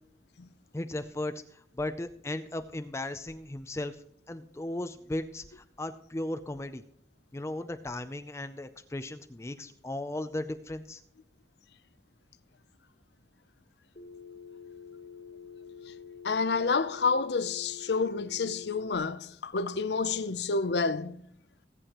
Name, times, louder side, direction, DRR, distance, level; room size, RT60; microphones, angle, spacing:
voice 1, 0.7-6.8 7.3-11.0, left 1 dB, 15° left, 0.4 m, -36 dB
Telephone, 14.0-19.0, left 6 dB, 45° left, 1.0 m, -47 dB
voice 2, 16.2-21.2, left 4 dB, 75° left, 0.6 m, -29 dB
19.0 x 8.4 x 3.0 m
head